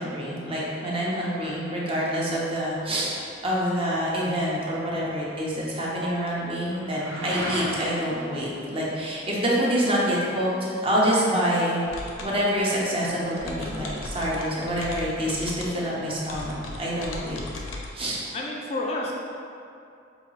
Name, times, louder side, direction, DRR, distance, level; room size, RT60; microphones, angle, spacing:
voice 1, 0.0-3.1 3.4-11.8 12.2-17.4 17.9-18.2, equal, 30° right, -5 dB, 0.6 m, -26 dB
sound 1, 2.2-12.1, right 1 dB, 75° right, 0.6 m, -41 dB
sound 2, 11.9-17.9, left 2 dB, 90° left, 0.5 m, -38 dB
voice 2, 18.3-19.1, left 2 dB, 30° left, -2 dB, 0.3 m, -30 dB
4.9 x 2.4 x 3.1 m, 2.5 s
head